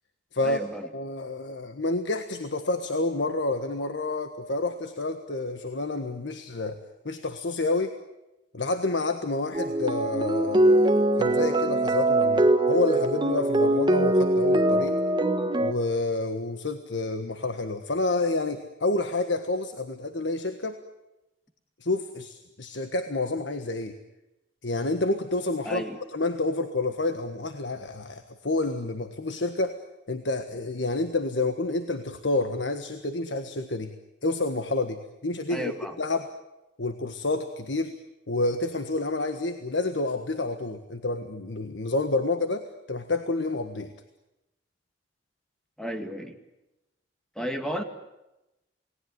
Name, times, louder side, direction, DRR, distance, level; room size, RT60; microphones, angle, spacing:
voice 1, 0.4-0.9 25.6-26.0 35.5-36.0 45.8-46.3 47.4-47.8, equal, 5° left, 6 dB, 2.2 m, -33 dB
voice 2, 0.9-8.0 8.5-15.0 15.6-20.8 21.8-24.0 24.6-25.8 26.1-29.8 30.1-33.9 34.2-35.7 36.0-36.3 36.8-38.0 38.3-43.9, left 2 dB, 85° left, 8 dB, 1.5 m, -29 dB
sound 1, 9.5-15.7, right 1 dB, 25° right, 1.4 m, -22 dB
28.5 x 19.5 x 9.6 m, 0.96 s
head